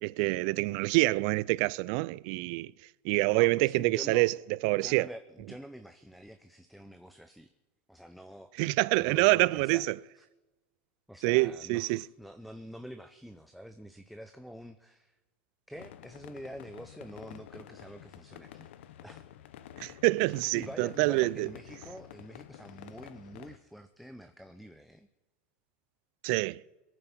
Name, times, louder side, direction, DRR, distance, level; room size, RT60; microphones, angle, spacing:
voice 1, 0.0-2.7 3.0-4.4 4.6-5.1 8.6-9.9 11.2-12.0 19.8-21.5 26.2-26.6, right 23 dB, 60° right, 0.4 m, -26 dB
voice 2, 3.3-4.3 4.8-7.5 7.9-8.7 9.0-9.9 10.2-10.3 11.1-15.2 15.7-18.7 19.0-19.3 20.5-25.1, equal, ahead, 0.7 m, -46 dB
sound 1, 15.7-23.6, left 11 dB, 80° left, 0.9 m, -50 dB
22.0 x 9.0 x 6.1 m
supercardioid pair, 135°, 6 cm